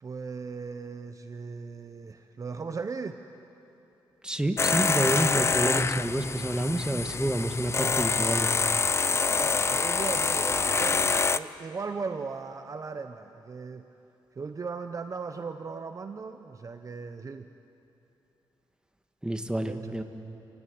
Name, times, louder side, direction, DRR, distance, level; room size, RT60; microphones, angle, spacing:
voice 1, 0.0-3.2 9.3-13.9 14.4-17.5 19.7-19.9, right 4 dB, 40° right, 8 dB, 0.9 m, -37 dB
voice 2, 4.2-8.5 19.2-20.0, right 1 dB, 10° right, 6 dB, 1.7 m, -28 dB
sound 1, 4.6-11.4, left 4 dB, 30° left, 0.6 m, -26 dB
28.5 x 17.5 x 9.5 m, 2.9 s
cardioid pair, 95°, 9 cm